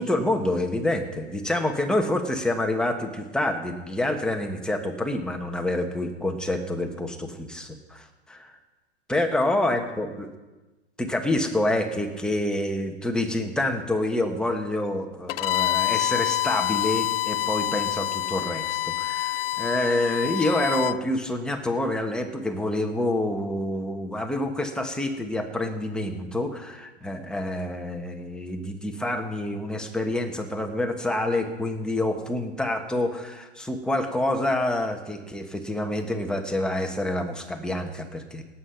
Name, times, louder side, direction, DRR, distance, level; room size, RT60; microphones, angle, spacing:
voice 1, 0.0-8.6 9.1-10.3 11.0-38.4, left 1 dB, ahead, 3 dB, 1.4 m, -27 dB
Bowed string instrument, 15.3-21.0, left 13 dB, 60° left, 0.5 m, -27 dB
18.0 x 8.7 x 5.9 m, 1.1 s
hypercardioid pair, 130°, 33 cm